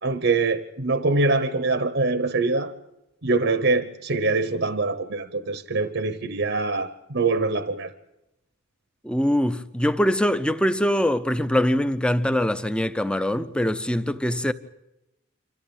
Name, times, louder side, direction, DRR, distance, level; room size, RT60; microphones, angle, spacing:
voice 1, 0.0-2.7 3.2-7.9, right 3 dB, 60° right, 1.0 m, -24 dB
voice 2, 9.0-14.5, equal, 5° left, 0.8 m, -23 dB
27.5 x 14.0 x 8.8 m
head